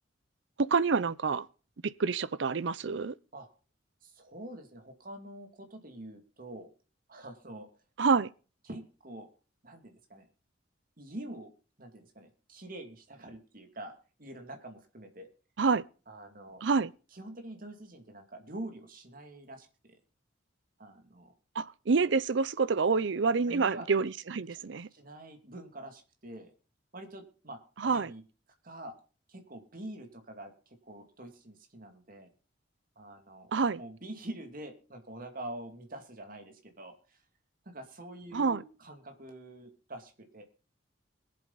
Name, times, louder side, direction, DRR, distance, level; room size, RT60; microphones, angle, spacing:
voice 1, 0.6-1.5 1.8-3.1 8.0-8.3 15.6-15.8 16.6-16.9 21.6-24.9 27.8-28.1 33.5-33.8 38.3-38.6, right 4 dB, 65° right, 0.6 m, -27 dB
voice 2, 4.0-6.7 7.1-7.7 8.6-9.3 9.6-10.3 11.0-11.5 11.8-13.9 14.2-15.3 16.1-16.6 17.1-20.0 20.8-21.3 23.5-23.9 24.5-24.6 24.9-26.5 26.9-28.2 28.6-29.0 29.3-32.3 33.0-33.5 33.8-37.2 37.7-40.4, right 1 dB, 45° right, 2.4 m, -46 dB
21.5 x 7.8 x 4.0 m
head